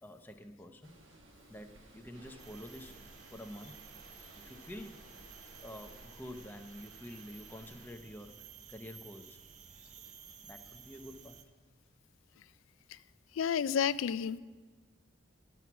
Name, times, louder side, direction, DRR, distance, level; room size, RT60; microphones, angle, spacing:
voice 1, 0.0-1.0 1.5-3.0 3.3-3.8 4.3-5.0 5.6-9.4 10.4-11.4, equal, 10° left, 5 dB, 0.6 m, -48 dB
sound 1, 0.8-6.1, right 2 dB, 70° right, 1.3 m, -60 dB
sound 2, 2.1-7.9, right 1 dB, 85° right, 2.0 m, -58 dB
sound 3, 2.4-11.4, right 7 dB, 35° right, 0.6 m, -54 dB
voice 2, 13.3-14.4, left 7 dB, 75° left, 17 dB, 0.3 m, -31 dB
12.5 x 6.0 x 7.1 m, 1.4 s
head